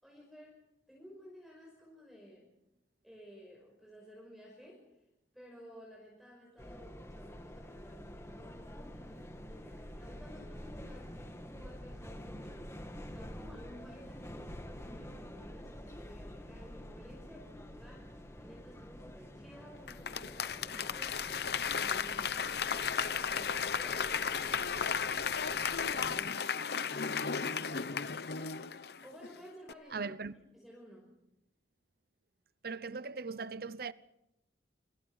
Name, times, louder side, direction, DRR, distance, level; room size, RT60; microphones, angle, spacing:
voice 1, 0.0-0.6 0.9-2.5 3.0-4.8 5.3-23.5 23.8-25.4 25.7-28.2 29.0-31.1, equal, ahead, 5.5 m, -54 dB
sound 1, 6.6-26.2, equal, 15° left, 1.9 m, -48 dB
Applause / Crowd, 19.9-29.3 29.7-29.8, left 6 dB, 65° left, 0.8 m, -34 dB
voice 2, 29.9-30.3 32.6-33.9, right 4 dB, 60° right, 0.8 m, -39 dB
28.5 x 25.5 x 4.9 m
head